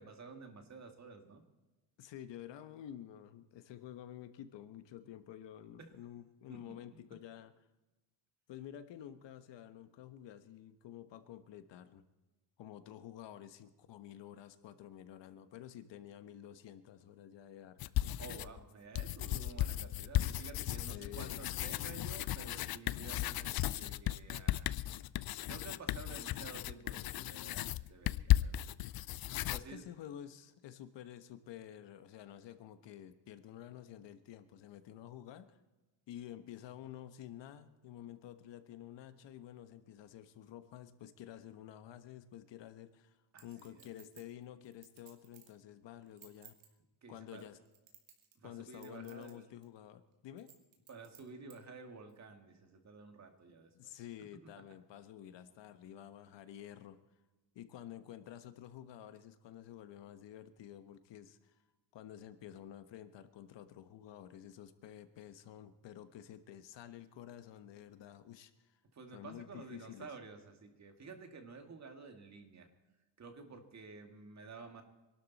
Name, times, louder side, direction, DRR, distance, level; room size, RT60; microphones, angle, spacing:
voice 1, 0.0-1.4 5.8-5.9 6.5-6.7 18.2-24.7 25.5-28.7 29.5-29.8 43.3-43.9 47.0-47.5 48.4-49.5 50.9-53.9 54.4-54.6 68.9-72.7 73.2-74.8, right 4 dB, 40° right, 5 dB, 2.3 m, -52 dB
voice 2, 2.0-7.5 8.5-12.0 12.6-17.8 20.8-21.7 29.5-35.6 36.1-43.2 43.4-46.6 47.1-47.6 48.4-50.5 53.7-57.0 57.5-61.7 61.9-68.8 69.1-70.1, left 11 dB, 75° left, 10 dB, 1.3 m, -51 dB
sound 1, 17.8-18.6 19.0-29.6, left 14 dB, 55° left, 0.5 m, -35 dB
Chink clink, 43.4-45.6 46.0-46.7 47.3-48.4 48.7-49.3 49.6-49.7 50.4-51.6 52.1-52.2, right 9 dB, 85° right, 3.1 m, -59 dB
26.0 x 12.5 x 4.2 m, 1.1 s
cardioid pair, 145°, 43 cm